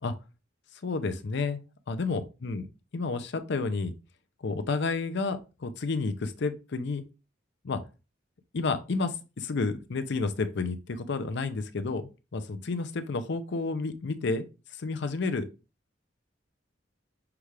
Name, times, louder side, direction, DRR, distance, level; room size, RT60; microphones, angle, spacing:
voice 1, 0.8-1.6 1.9-2.6 2.9-3.9 4.4-7.0 7.6-7.8 8.5-14.4 14.7-15.5, left 3 dB, 65° left, 0.6 m, -30 dB
5.8 x 2.4 x 3.2 m
head